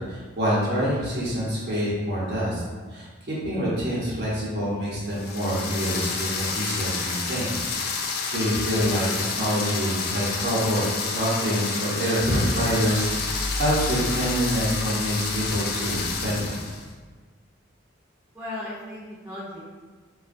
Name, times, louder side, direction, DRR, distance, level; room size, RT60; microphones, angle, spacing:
voice 1, 0.1-2.6 2.9-7.6 7.9-16.6, equal, 55° right, -7 dB, 0.9 m, -26 dB
sound 1, 5.1-16.8, left 4 dB, 50° left, 0.3 m, -30 dB
sound 2, 12.6-17.1, left 1 dB, 80° right, 0.5 m, -36 dB
voice 2, 18.3-19.7, left 1 dB, 10° right, -10 dB, 0.7 m, -36 dB
3.4 x 2.4 x 2.5 m, 1.4 s
head